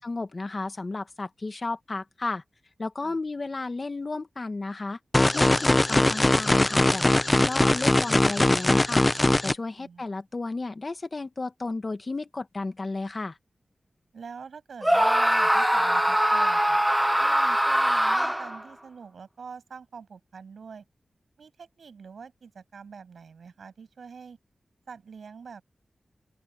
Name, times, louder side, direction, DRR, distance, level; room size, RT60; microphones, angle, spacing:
voice 1, 0.0-2.4 2.8-5.0 5.3-7.0 7.4-9.1 9.4-13.4, left 3 dB, 45° left, 1.7 m, -33 dB
sound 1, 5.1-9.5, left 2 dB, 25° left, 0.9 m, -21 dB
voice 2, 14.1-16.8 17.2-20.8 21.4-24.4 24.9-25.6, right 5 dB, 85° right, 7.3 m, -45 dB
Screaming, 14.8-18.6, equal, 10° right, 1.2 m, -22 dB
open air
cardioid pair, 50°, 0 cm